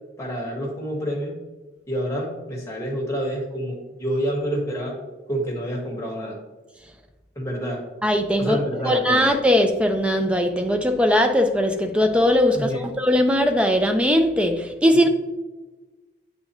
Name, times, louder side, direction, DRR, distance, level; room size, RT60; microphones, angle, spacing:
voice 1, 0.2-1.3 1.9-4.9 5.3-6.4 7.3-7.8 8.4-9.1 12.5-12.8, equal, 15° left, -2 dB, 1.4 m, -28 dB
voice 2, 8.0-15.1, equal, 5° right, 6 dB, 0.4 m, -20 dB
8.6 x 3.9 x 3.0 m, 1.2 s
head